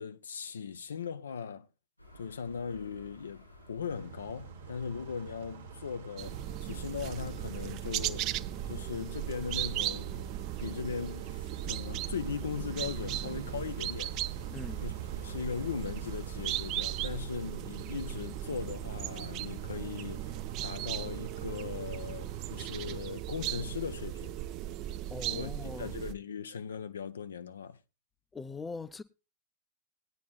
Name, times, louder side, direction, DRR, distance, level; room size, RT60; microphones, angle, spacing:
voice 1, 0.0-1.7 2.1-8.3 8.7-14.2 14.8-14.9 15.2-24.3 25.3-27.8, left 6 dB, 70° left, 0.5 m, -39 dB
sound 1, 2.0-17.1, equal, 90° left, 4.6 m, -52 dB
Car / Idling / Accelerating revving vroom, 3.9-23.0, right 7 dB, 55° right, 1.1 m, -48 dB
sound 2, 6.2-26.1, right 13 dB, 40° right, 0.5 m, -37 dB
voice 2, 14.5-14.9 25.1-25.9 28.3-29.0, left 3 dB, 15° left, 0.6 m, -41 dB
19.5 x 9.3 x 2.4 m
figure-of-eight pair, 90°, 0 cm